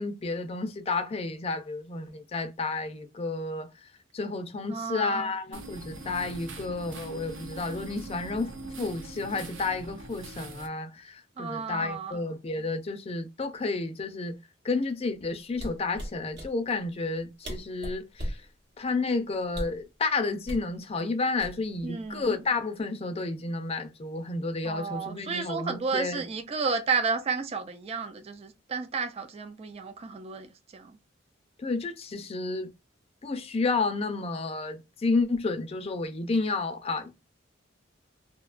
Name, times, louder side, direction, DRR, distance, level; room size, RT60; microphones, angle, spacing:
voice 1, 0.0-3.7 4.1-8.5 8.8-14.4 14.6-18.4 18.8-26.3 31.6-32.7 33.2-37.3, left 3 dB, 30° left, 0.4 m, -31 dB
voice 2, 4.7-5.3 11.4-12.2 21.8-22.3 24.6-30.9, right 5 dB, 30° right, 0.3 m, -32 dB
sound 1, 5.5-10.7, right 2 dB, 90° right, 0.6 m, -42 dB
sound 2, 15.5-16.5 17.2-17.3 17.4-18.5 19.5-19.9 20.5-20.7 21.4-21.9 22.2-22.5, equal, 60° right, 0.9 m, -36 dB
2.7 x 2.2 x 2.4 m
head